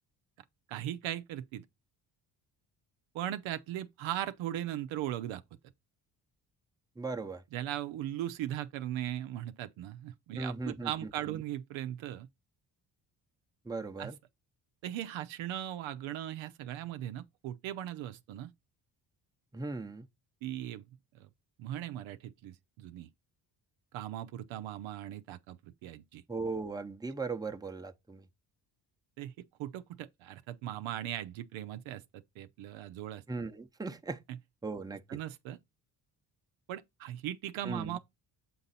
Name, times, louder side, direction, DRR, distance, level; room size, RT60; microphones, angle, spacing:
voice 1, 0.7-1.7 3.1-5.4 7.5-12.3 14.0-14.1 14.8-18.5 20.4-20.8 21.1-21.3 21.6-23.1 23.9-26.2 29.2-33.2 35.1-35.6 36.7-38.0, right 12 dB, 75° right, 0.7 m, -38 dB
voice 2, 7.0-7.4 10.3-11.4 13.6-14.2 19.5-20.1 26.3-28.3 33.3-34.2 34.6-35.0 37.6-38.0, right 3 dB, 10° right, 0.8 m, -38 dB
7.7 x 3.9 x 4.1 m
supercardioid pair, 60°, 47 cm